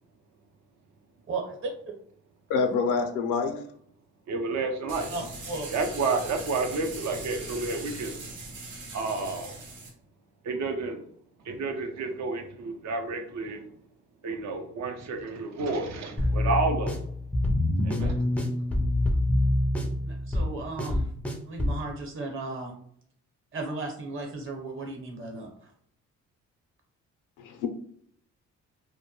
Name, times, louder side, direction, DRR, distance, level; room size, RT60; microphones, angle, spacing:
voice 1, 2.5-3.6 27.4-27.7, left 5 dB, 90° left, 5 dB, 0.5 m, -26 dB
voice 2, 4.3-5.1 5.7-8.2 8.9-9.7 10.4-11.0 11.4-13.7 14.2-17.0 17.8-18.3, right 3 dB, 65° right, 4 dB, 0.6 m, -30 dB
sound 1, 4.9-9.9, right 2 dB, 90° right, 0.9 m, -40 dB
sound 2, 16.2-21.8, left 1 dB, 5° left, 0.4 m, -26 dB
voice 3, 20.0-21.1 21.4-22.7 23.5-25.5, right 3 dB, 45° right, 1 dB, 0.9 m, -35 dB
2.2 x 2.1 x 2.9 m, 0.64 s
cardioid pair, 90°, 30 cm